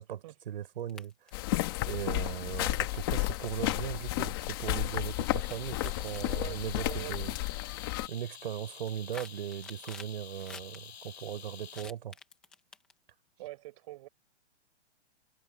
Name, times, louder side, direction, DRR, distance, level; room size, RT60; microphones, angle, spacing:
voice 1, 0.0-1.3 1.9-7.3 8.1-12.1, right 10 dB, 50° right, 3.8 m, -38 dB
sound 1, 0.8-1.4 2.2-2.4 3.4-4.2 5.2-6.5 7.3-7.5 7.9-8.2 8.6-10.8 11.7-13.1, left 5 dB, 5° left, 0.5 m, -50 dB
sound 2, 1.3-8.1, left 18 dB, 20° left, 1.1 m, -32 dB
sound 3, 4.4-12.1, left 8 dB, 65° left, 7.2 m, -50 dB
voice 2, 6.3-7.3 13.4-14.1, right 18 dB, 30° right, 5.5 m, -44 dB
hypercardioid pair, 175°, 34 cm